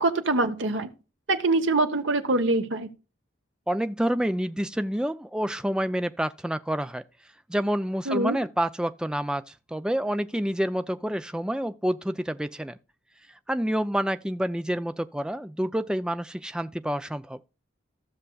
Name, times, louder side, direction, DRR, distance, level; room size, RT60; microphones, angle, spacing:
voice 1, 0.0-0.9 1.3-2.9 8.1-8.4, right 2 dB, 80° right, 1.0 m, -24 dB
voice 2, 3.7-7.0 7.5-12.8 13.5-17.4, equal, 5° right, 0.3 m, -28 dB
15.0 x 6.5 x 2.3 m
head